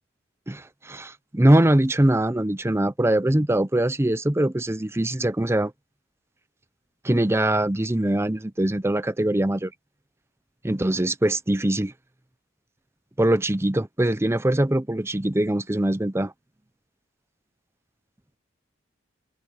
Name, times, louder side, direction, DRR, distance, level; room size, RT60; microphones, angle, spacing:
voice 1, 0.5-5.7 7.0-9.7 10.6-11.9 13.2-16.3, right 1 dB, 15° right, 0.7 m, -22 dB
head